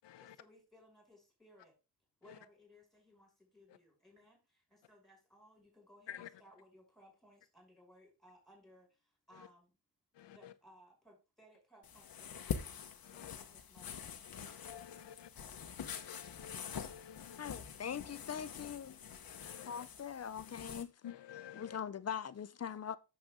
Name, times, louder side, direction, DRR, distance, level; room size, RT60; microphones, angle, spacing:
voice 1, 0.2-1.7 2.2-9.8 10.3-12.8 13.1-14.3, equal, ahead, 6.0 m, -63 dB
voice 2, 10.2-10.5 13.0-13.3 14.5-15.3 15.8-17.6 18.2-18.3 19.3-19.9 21.0-21.8, left 10 dB, 75° left, 0.9 m, -51 dB
sound 1, 11.8-20.8, left 7 dB, 55° left, 1.3 m, -45 dB
voice 3, 17.4-19.0 19.7-20.9 21.5-23.0, left 8 dB, 35° left, 0.6 m, -42 dB
9.0 x 7.3 x 3.7 m
cardioid pair, 115°, 43 cm